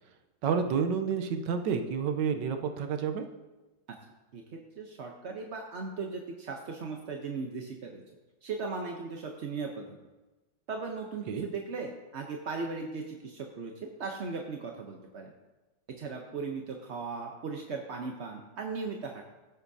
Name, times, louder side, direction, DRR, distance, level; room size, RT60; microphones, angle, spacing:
voice 1, 0.4-3.2 11.3-11.4, right 6 dB, 70° right, 6 dB, 1.4 m, -29 dB
voice 2, 4.8-8.0 8.4-9.9 10.7-15.3 16.0-19.3, right 4 dB, 55° right, 1 dB, 0.8 m, -37 dB
15.5 x 8.0 x 2.7 m, 1.1 s
omnidirectional pair, 2.1 m